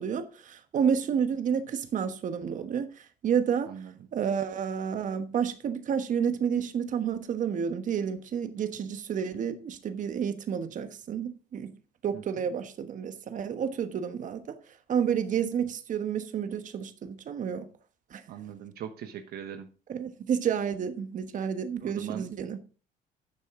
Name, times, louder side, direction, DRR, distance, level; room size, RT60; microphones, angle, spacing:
voice 1, 0.0-3.7 4.1-11.7 12.0-14.6 14.9-17.7 18.1-18.2 19.9-22.6, right 7 dB, 50° right, 1.2 m, -30 dB
voice 2, 12.1-12.4 18.3-19.7 21.8-22.3, right 9 dB, 65° right, 1.0 m, -40 dB
11.5 x 7.0 x 3.7 m
cardioid pair, 110°, 17 cm